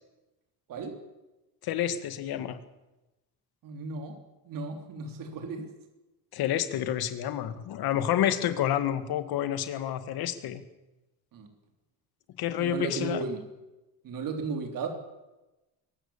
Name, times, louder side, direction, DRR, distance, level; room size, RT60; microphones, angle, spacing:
voice 1, 1.6-2.6 6.3-10.6 12.4-13.2, left 11 dB, 60° left, 11 dB, 1.9 m, -29 dB
voice 2, 3.6-4.1 4.5-5.7 11.3-11.5 12.6-13.4 14.0-14.9, right 4 dB, 50° right, 4 dB, 3.4 m, -34 dB
23.0 x 19.0 x 7.2 m, 1.0 s
cardioid pair, 180°, 42 cm